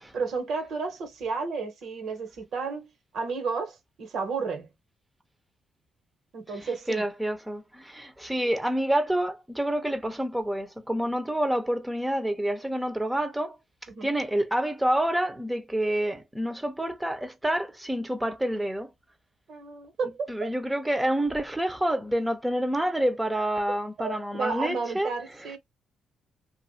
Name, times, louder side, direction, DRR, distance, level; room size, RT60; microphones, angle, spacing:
voice 1, 0.1-2.9 3.1-4.7 6.3-7.0 13.9-14.1 19.5-20.5 24.0-25.6, right 4 dB, 65° right, 1.2 m, -32 dB
voice 2, 6.6-13.6 14.0-18.9 20.3-25.1 25.4-25.6, right 1 dB, 10° right, 0.7 m, -28 dB
2.6 x 2.5 x 2.7 m
cardioid pair, 90°, 0 cm